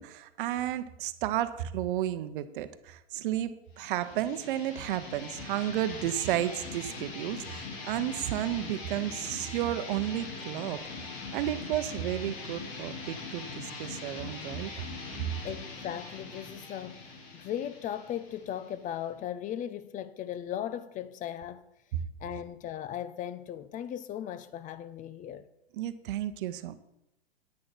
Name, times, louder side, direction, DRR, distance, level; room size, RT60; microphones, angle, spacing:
voice 1, 0.0-10.8 11.3-14.7 25.7-26.8, right 12 dB, 55° right, 0.9 m, -32 dB
sound 1, 3.8-19.2, left 4 dB, 40° left, 2.3 m, -42 dB
voice 2, 15.4-21.7 22.2-25.4, left 10 dB, 25° left, 0.7 m, -37 dB
10.0 x 9.7 x 4.5 m
hypercardioid pair, 110°, 31 cm